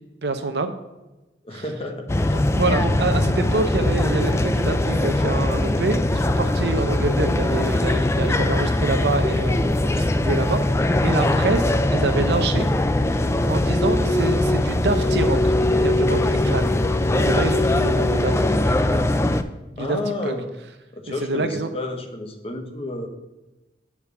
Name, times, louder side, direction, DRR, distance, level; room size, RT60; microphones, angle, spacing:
voice 1, 0.2-0.7 1.5-1.6 2.5-10.6 11.0-12.7 13.5-16.6 17.1-18.7 19.8-20.0 20.2-20.3 21.3-21.7, right 3 dB, 70° right, 7 dB, 0.6 m, -26 dB
voice 2, 1.4-2.1 2.4-2.5 13.6-13.7 19.8-20.5 20.9-23.1, left 2 dB, 35° left, 4 dB, 1.0 m, -30 dB
sound 1, 2.1-19.4, left 1 dB, 15° left, 0.3 m, -21 dB
7.0 x 4.4 x 6.8 m, 1.0 s
head